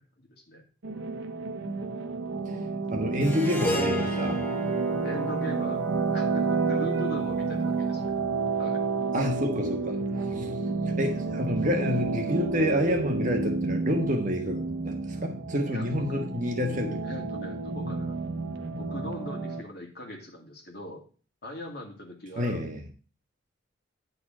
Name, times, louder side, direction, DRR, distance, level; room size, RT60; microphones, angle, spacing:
voice 1, 0.2-0.6 5.0-8.1 8.6-8.8 10.3-10.6 15.7-16.3 17.0-18.2 18.8-21.1 21.4-22.6, left 1 dB, 50° left, 2.1 m, -40 dB
sound 1, 0.8-19.6, right 4 dB, 70° right, 0.9 m, -30 dB
voice 2, 2.9-4.4 9.1-10.0 10.2-10.5 11.0-17.0 22.4-22.8, equal, 40° right, 1.3 m, -28 dB
Harp, 3.2-7.6, left 1 dB, 10° left, 1.0 m, -35 dB
9.8 x 4.2 x 6.0 m
head